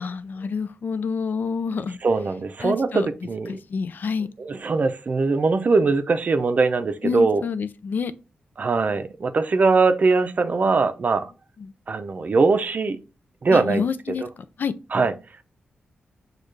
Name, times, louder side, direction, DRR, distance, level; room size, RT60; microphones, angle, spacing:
voice 1, 0.0-2.0 2.6-3.1 3.5-4.3 7.0-8.1 11.6-11.7 13.5-14.2 14.6-14.8, left 5 dB, 65° left, 0.4 m, -28 dB
voice 2, 2.0-3.5 4.4-7.4 8.6-11.3 11.9-13.0 13.4-13.8 14.9-15.1, right 4 dB, 50° right, 0.5 m, -21 dB
6.4 x 2.4 x 3.1 m
cardioid pair, 75°, 3 cm